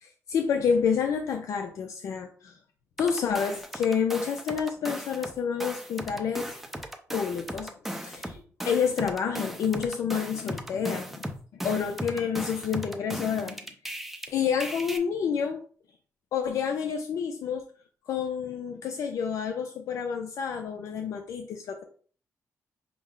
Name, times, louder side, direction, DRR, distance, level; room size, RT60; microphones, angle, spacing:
voice 1, 0.0-2.6 3.0-6.5 7.1-11.2 11.6-13.6 14.3-15.6 16.3-17.6 18.1-21.8, left 6 dB, 75° left, 5 dB, 0.5 m, -29 dB
sound 1, 3.0-5.3 5.6-14.3 14.6-15.0, equal, 5° right, 0.6 m, -37 dB
5.8 x 2.1 x 3.7 m, 0.44 s
cardioid pair, 115°, 6 cm